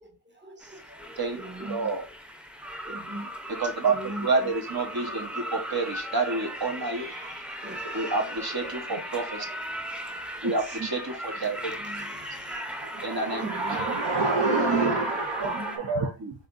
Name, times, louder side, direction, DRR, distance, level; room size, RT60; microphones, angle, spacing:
voice 1, 0.3-1.1 1.3-1.9 2.8-3.3 3.8-4.3 5.1-5.2 7.6-7.9 9.9-10.5 11.8-12.7 13.4-13.7 15.4-15.9, right 1 dB, 25° right, 1.1 m, -41 dB
sound 1, 0.6-15.8, equal, ahead, 0.6 m, -38 dB
voice 2, 1.2-2.0 3.5-7.1 7.9-9.5 10.4-11.7 13.0-13.4 13.7-13.8 15.4-15.5 15.9-16.3, right 3 dB, 50° right, 1.2 m, -29 dB
voice 3, 6.9-8.2 8.6-8.7 10.4-10.9 12.6-16.1, right 3 dB, 65° right, 0.7 m, -29 dB
4.0 x 3.3 x 2.5 m
wide cardioid pair, 40°, 47 cm